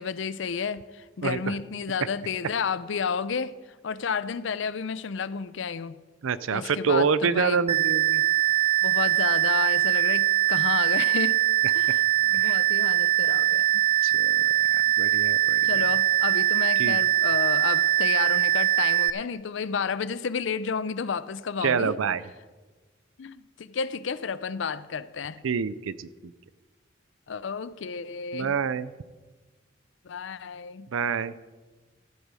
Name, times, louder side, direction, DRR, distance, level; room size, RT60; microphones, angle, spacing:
voice 1, 0.0-3.6 3.8-6.0 6.5-7.6 8.8-11.4 11.7-13.8 15.6-21.9 23.2-25.4 27.3-28.5 30.0-30.9, left 6 dB, 65° left, 0.5 m, -31 dB
voice 2, 1.2-1.5 6.2-8.2 12.3-12.6 14.0-14.4 14.7-15.9 16.8-17.0 21.6-22.3 25.4-26.3 28.3-28.9 30.9-31.3, right 6 dB, 85° right, 0.5 m, -27 dB
sound 1, 7.7-19.1, right 15 dB, 30° right, 0.3 m, -22 dB
14.0 x 8.2 x 4.9 m
head